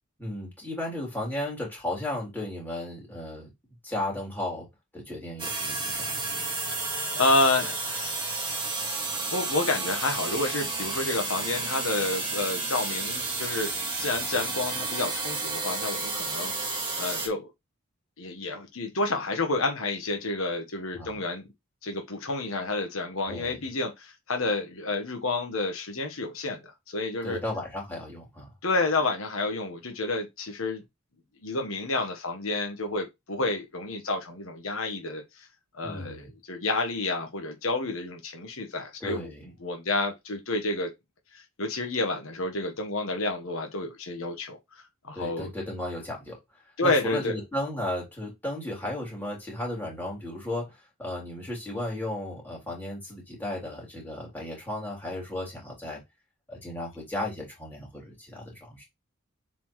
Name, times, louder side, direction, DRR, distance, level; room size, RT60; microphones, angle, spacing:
voice 1, 0.2-3.5 3.8-4.7 4.9-6.1 20.9-21.2 23.3-23.6 27.2-28.5 35.8-36.3 39.0-39.5 45.1-46.4 46.8-56.0 56.5-58.8, left 1 dB, 10° left, 3.3 m, -34 dB
sound 1, 5.4-17.3, right 3 dB, 20° right, 1.9 m, -31 dB
voice 2, 7.1-8.1 9.3-13.7 14.0-16.5 17.0-17.5 18.2-21.4 21.8-26.6 26.9-27.4 28.6-30.8 31.4-35.5 35.7-39.3 39.6-40.9 41.3-44.6 45.0-45.5 46.8-47.3, left 2 dB, 70° left, 1.3 m, -29 dB
7.3 x 4.3 x 3.2 m
head